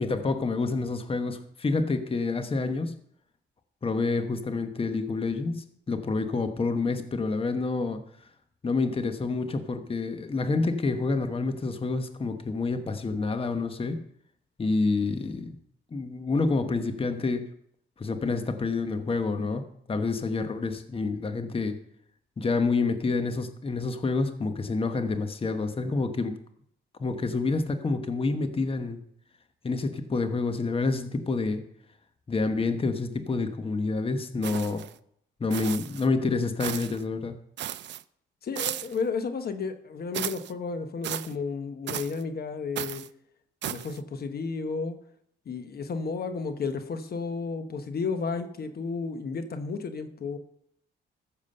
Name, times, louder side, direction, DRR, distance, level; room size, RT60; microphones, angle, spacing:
voice 1, 0.0-3.0 3.8-8.0 8.6-14.0 14.6-15.6 15.9-17.5 18.0-21.8 22.4-26.4 27.0-29.0 29.6-31.7 32.3-34.8 35.4-37.4, left 3 dB, 30° left, 9 dB, 1.1 m, -28 dB
sound 1, 34.4-34.9 35.5-36.1 36.6-37.0 37.6-38.0 38.5-39.0 40.1-40.5 41.0-41.3 41.9-42.2 42.7-43.1 43.6-44.0, right 12 dB, 65° right, 0.5 m, -35 dB
voice 2, 38.4-43.0 43.6-45.0 45.4-50.4, left 4 dB, 50° left, 9 dB, 1.2 m, -32 dB
14.0 x 7.3 x 5.5 m, 0.69 s
cardioid pair, 90°, 20 cm